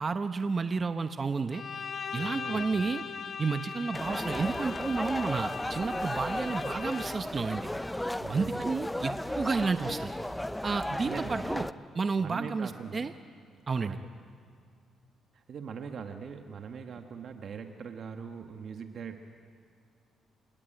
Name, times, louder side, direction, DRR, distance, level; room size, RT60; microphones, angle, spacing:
voice 1, 0.0-1.6 2.1-3.0 3.4-7.7 8.3-10.1 10.6-11.7 11.9-13.1 13.7-14.0, right 4 dB, 35° right, 9 dB, 0.8 m, -31 dB
Bowed string instrument, 1.5-7.3, left 6 dB, 50° left, 1.2 m, -40 dB
voice 2, 2.2-2.9 8.2-8.7 11.0-11.5 12.2-13.1 13.7-14.1 15.3-19.2, right 6 dB, 55° right, 5 dB, 1.4 m, -42 dB
sound 1, 3.9-11.7, left 1 dB, 5° left, 0.6 m, -35 dB
29.0 x 19.0 x 9.1 m, 2.2 s
cardioid pair, 90°, 0 cm